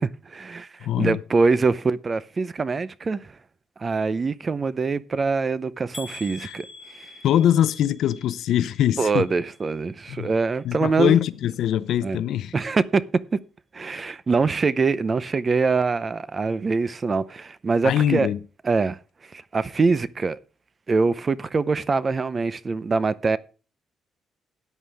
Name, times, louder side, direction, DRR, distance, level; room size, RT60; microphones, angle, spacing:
voice 1, 0.0-0.7 1.0-3.3 3.8-6.7 6.9-7.1 9.0-11.2 12.0-12.2 12.5-13.0 13.7-18.3 18.6-19.0 19.2-20.4 20.9-23.4, right 4 dB, 30° right, 0.6 m, -24 dB
voice 2, 0.8-1.2 6.4-6.5 7.2-9.3 10.1-10.3 10.6-12.5 17.8-18.4, left 11 dB, 75° left, 0.6 m, -22 dB
sound 1, 5.9-9.9 10.2-10.8 11.3-11.4 11.8-11.9, left 3 dB, 15° left, 1.8 m, -45 dB
14.0 x 9.4 x 3.4 m
cardioid pair, 135°, 0 cm